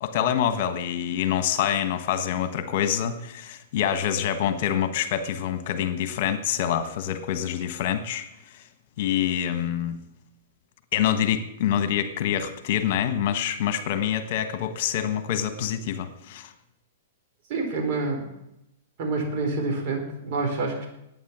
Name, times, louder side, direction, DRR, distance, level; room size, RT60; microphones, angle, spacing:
voice 1, 0.0-8.3 8.5-8.6 9.0-10.0 10.9-16.5, left 9 dB, 55° left, 10 dB, 1.3 m, -26 dB
voice 2, 17.5-18.3 19.0-20.9, right 3 dB, 50° right, 2 dB, 4.2 m, -27 dB
11.5 x 9.2 x 7.3 m, 0.83 s
hypercardioid pair, 130°, 0 cm